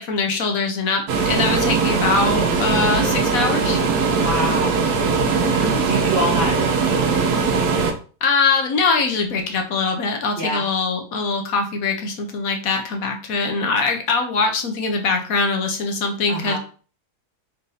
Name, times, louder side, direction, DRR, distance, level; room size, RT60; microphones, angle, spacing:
voice 1, 0.0-3.8 5.4-5.8 8.2-16.6, left 4 dB, 65° left, 4 dB, 1.1 m, -22 dB
sound 1, 1.1-7.9, right 5 dB, 75° right, 1.2 m, -20 dB
voice 2, 4.2-4.8 5.8-7.3 10.4-10.6 16.3-16.6, right 1 dB, 50° right, 0 dB, 0.9 m, -26 dB
4.2 x 2.6 x 3.8 m, 0.39 s
omnidirectional pair, 1.7 m